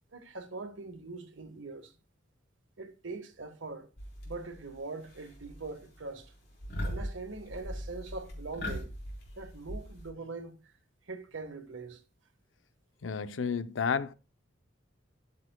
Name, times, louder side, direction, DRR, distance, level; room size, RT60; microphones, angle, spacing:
voice 1, 0.1-1.9 2.8-3.9 4.2-6.3 6.8-8.9 9.4-10.5 11.1-12.0, right 3 dB, 75° right, 1.4 m, -42 dB
sound 1, 4.0-4.6 5.0-5.7 5.9-6.2 6.6-10.1, equal, 55° left, 3.9 m, -39 dB
voice 2, 13.0-14.1, left 6 dB, 75° left, 0.6 m, -31 dB
13.5 x 6.7 x 2.2 m
head